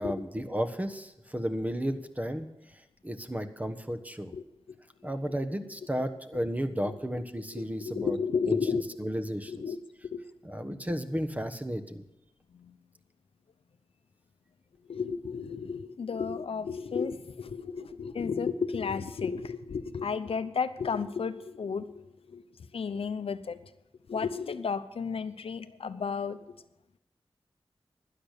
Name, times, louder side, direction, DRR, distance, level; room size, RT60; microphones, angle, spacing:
voice 1, 0.0-2.5 3.0-4.3 5.0-8.2 8.5-8.6 9.0-9.5 10.4-12.0, equal, 15° right, 9 dB, 1.3 m, -33 dB
voice 2, 4.3-5.1 5.6-5.7 6.7-6.9 7.5-8.9 9.5-9.8 10.1-10.2 12.5-12.8 14.8-22.4 22.7-23.7 24.1-26.6, left 5 dB, 90° left, 12 dB, 0.7 m, -33 dB
12.5 x 10.5 x 6.7 m, 0.87 s
wide cardioid pair, 55°, 10 cm